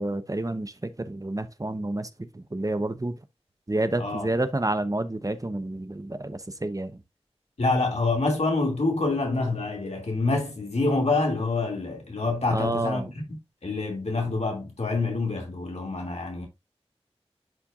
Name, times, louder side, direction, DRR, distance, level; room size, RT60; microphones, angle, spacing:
voice 1, 0.0-3.2 3.7-7.0 12.5-13.1, right 2 dB, 35° right, 0.9 m, -29 dB
voice 2, 7.6-13.0 13.3-16.5, left 3 dB, 85° left, 2.6 m, -26 dB
11.0 x 4.5 x 2.5 m
wide cardioid pair, 50°, 11 cm